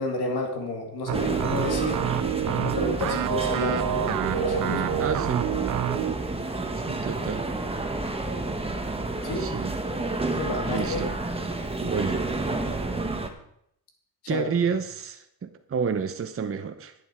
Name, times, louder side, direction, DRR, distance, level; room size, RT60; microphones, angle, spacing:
voice 1, 0.0-2.0 2.5-5.6 9.2-9.5 10.3-11.1 14.2-14.5, left 2 dB, 80° left, 2 dB, 2.6 m, -31 dB
sound 1, 1.1-13.3, right 2 dB, 15° right, 1.2 m, -30 dB
sound 2, 1.1-6.2, right 12 dB, 55° right, 0.5 m, -28 dB
voice 2, 5.0-5.5 6.8-7.5 9.4-9.8 10.7-11.2 11.8-12.3 14.3-16.9, right 6 dB, 35° right, 7 dB, 0.8 m, -30 dB
11.0 x 8.6 x 4.5 m, 0.73 s
cardioid pair, 100°, 38 cm